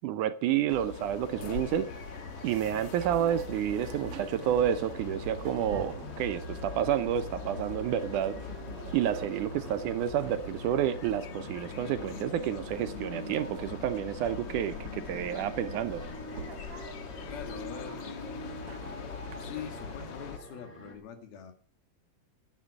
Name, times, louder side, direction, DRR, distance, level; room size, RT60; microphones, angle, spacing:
voice 1, 0.0-1.9 2.4-8.4 8.9-16.0, right 10 dB, 75° right, 2.0 m, -30 dB
sound 1, 0.7-20.4, left 6 dB, 55° left, 1.8 m, -42 dB
sound 2, 1.3-20.9, right 1 dB, 5° left, 3.2 m, -47 dB
sound 3, 3.0-20.1, right 6 dB, 60° right, 1.6 m, -48 dB
voice 2, 17.3-19.0 19.4-21.5, left 8 dB, 85° left, 3.9 m, -44 dB
16.0 x 10.5 x 4.8 m
omnidirectional pair, 4.2 m